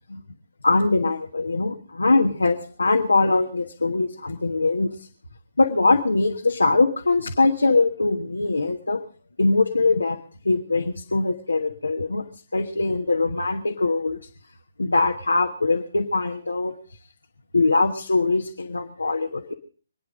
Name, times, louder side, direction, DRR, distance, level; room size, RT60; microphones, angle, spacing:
voice 1, 0.6-5.1 5.6-9.0 9.4-10.2 10.4-12.2 12.5-14.2 14.8-16.7 17.5-19.5, left 3 dB, 80° left, 4 dB, 1.3 m, -22 dB
25.0 x 9.5 x 5.1 m, 0.42 s
figure-of-eight pair, 135°, 0 cm